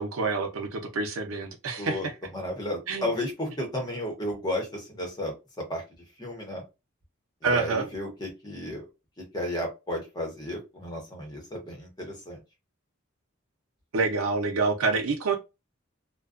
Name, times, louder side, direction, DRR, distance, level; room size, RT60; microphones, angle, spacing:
voice 1, 0.0-2.0 2.9-3.1 7.4-7.9 13.9-15.4, right 4 dB, 85° right, 0.6 m, -27 dB
voice 2, 1.8-5.3 5.7-5.8 6.2-6.6 7.4-8.8 9.2-12.4, left 1 dB, 20° left, 0.9 m, -33 dB
2.4 x 2.2 x 2.4 m
head